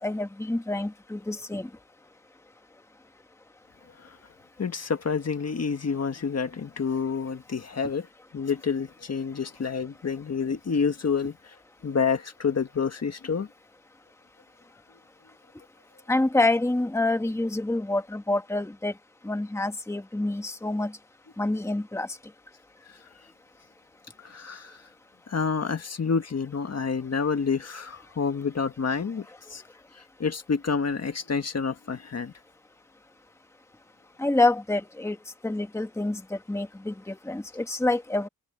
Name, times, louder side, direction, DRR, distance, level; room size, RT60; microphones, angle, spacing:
voice 1, 0.0-1.7 16.1-18.9 19.2-20.9 21.4-22.2 34.2-35.2 35.4-38.3, left 2 dB, 5° left, 1.4 m, -27 dB
voice 2, 4.6-8.1 8.3-11.4 11.8-13.5 24.2-24.8 25.3-29.2 29.5-29.6 30.2-32.3, left 5 dB, 45° left, 1.6 m, -28 dB
open air
wide cardioid pair, 135°, 37 cm